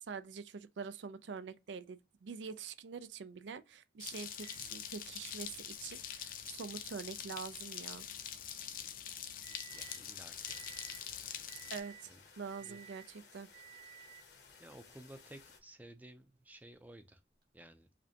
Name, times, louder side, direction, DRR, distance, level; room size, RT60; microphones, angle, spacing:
voice 1, 0.1-8.1 11.7-13.5, right 5 dB, 85° right, 0.4 m, -45 dB
sound 1, 4.0-11.8, left 9 dB, 50° left, 0.5 m, -45 dB
Microwave oven, 4.4-10.1 10.5-11.1 11.5-12.1 12.5-13.1 13.5-14.4 15.3-15.4 17.4-17.5, right 8 dB, 50° right, 1.3 m, -58 dB
sound 2, 9.7-15.6, left 5 dB, 70° left, 1.0 m, -60 dB
voice 2, 9.7-10.6 12.1-12.2 12.6-12.8 14.6-17.2 17.5-17.9, right 1 dB, 10° right, 0.4 m, -55 dB
5.0 x 2.1 x 2.7 m
head